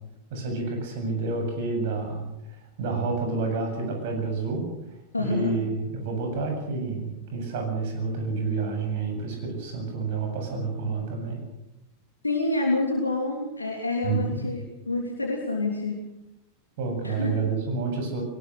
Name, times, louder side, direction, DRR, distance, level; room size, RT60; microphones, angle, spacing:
voice 1, 0.3-2.2 2.8-4.6 5.2-11.4 14.0-14.4 16.8-18.2, right 4 dB, 50° right, 3 dB, 7.9 m, -29 dB
voice 2, 5.1-5.5 12.2-16.0 17.0-17.3, left 2 dB, 80° left, 1 dB, 3.1 m, -27 dB
23.0 x 19.5 x 6.5 m, 0.88 s
figure-of-eight pair, 90°, 0 cm